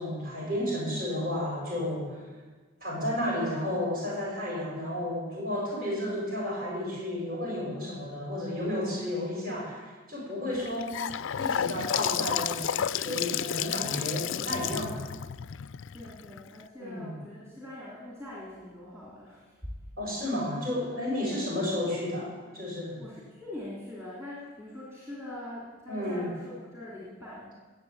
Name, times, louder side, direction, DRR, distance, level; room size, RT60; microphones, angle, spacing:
voice 1, 0.0-2.2 2.8-11.0 11.3-15.0 16.8-17.2 20.0-23.0 25.9-26.3, left 1 dB, 40° right, -3 dB, 6.9 m, -32 dB
Gurgling / Sink (filling or washing) / Bathtub (filling or washing), 10.5-16.6, left 9 dB, 55° left, 0.4 m, -31 dB
voice 2, 15.9-19.7 21.2-21.5 23.0-27.5, left 1 dB, 10° right, -7 dB, 3.3 m, -43 dB
20.5 x 8.2 x 8.7 m, 1.3 s
head